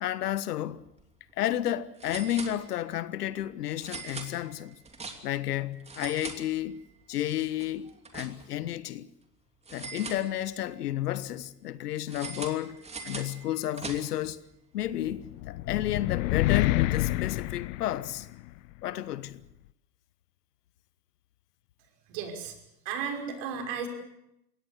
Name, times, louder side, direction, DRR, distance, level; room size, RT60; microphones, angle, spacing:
voice 1, 0.0-0.8 1.4-4.7 5.2-6.8 7.1-9.1 9.7-14.4 14.7-18.3 18.8-19.4, left 12 dB, 70° left, 1.3 m, -32 dB
sound 1, 0.8-1.0 1.3-1.4 2.0-3.0 3.8-5.5 5.8-7.0 7.3-8.7 9.7-10.8 12.1-14.3, right 4 dB, 15° right, 2.9 m, -42 dB
sound 2, 15.0-18.5, left 18 dB, 55° left, 0.9 m, -28 dB
voice 2, 22.1-22.6 22.9-23.9, right 6 dB, 50° right, 5.7 m, -34 dB
23.0 x 18.0 x 8.2 m
hypercardioid pair, 105°, 48 cm